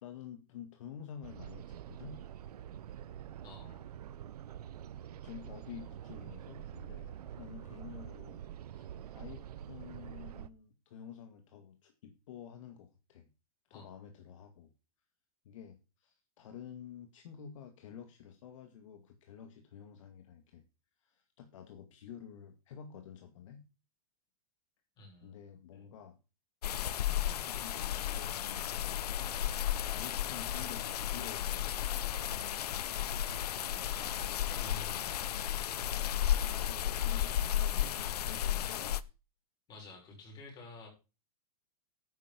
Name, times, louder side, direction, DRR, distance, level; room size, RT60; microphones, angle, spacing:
voice 1, 0.0-2.2 5.2-8.4 8.7-8.9 9.1-13.3 13.7-14.7 15.4-20.6 21.0-23.6 25.2-26.2 27.0-29.0 29.9-32.1 36.7-39.0, left 8 dB, 55° left, 6 dB, 2.1 m, -50 dB
sound 1, 1.2-10.5, right 11 dB, 80° right, 0.9 m, -46 dB
voice 2, 3.4-3.9 13.7-14.0 25.0-25.3 25.7-25.8 33.3-35.9 39.7-40.9, left 3 dB, 20° left, 1 dB, 6.1 m, -52 dB
sound 2, 26.6-39.0, left 11 dB, 85° left, 0.9 m, -34 dB
11.0 x 9.3 x 5.2 m, 0.31 s
supercardioid pair, 165°, 20 cm